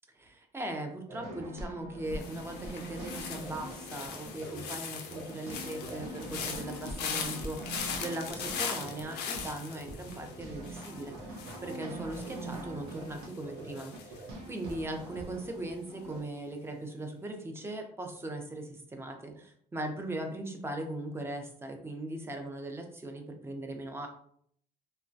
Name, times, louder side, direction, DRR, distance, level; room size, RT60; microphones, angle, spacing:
voice 1, 0.2-14.2 14.4-24.1, right 1 dB, 15° right, 4 dB, 0.5 m, -39 dB
sound 1, 1.1-16.2, right 1 dB, 85° right, 0.7 m, -43 dB
sound 2, 2.1-15.1 15.4-15.9, left 6 dB, 75° left, 0.5 m, -41 dB
2.9 x 2.2 x 2.6 m, 0.64 s
cardioid pair, 110°, 17 cm